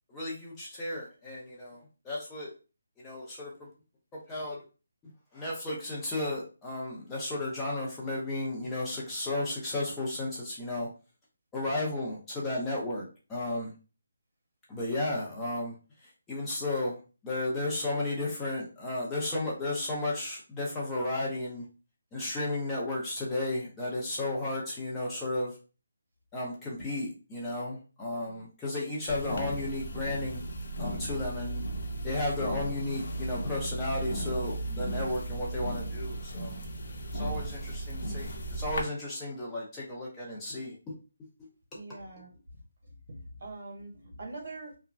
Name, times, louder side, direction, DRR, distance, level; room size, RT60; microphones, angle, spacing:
voice 1, 0.1-2.5 3.0-3.5 4.1-4.6 5.3-10.9 11.5-13.7 14.7-15.8 16.0-21.6 22.1-25.5 26.3-30.5 30.8-31.6 32.0-36.6 37.1-40.9, left 2 dB, 10° left, -6 dB, 0.7 m, -33 dB
sound 1, 29.1-38.8, right 1 dB, 55° left, 0.6 m, -35 dB
voice 2, 41.7-42.4 42.8-44.8, right 2 dB, 50° right, 1 dB, 1.2 m, -44 dB
2.9 x 2.2 x 2.6 m, 0.33 s
hypercardioid pair, 165°, 0 cm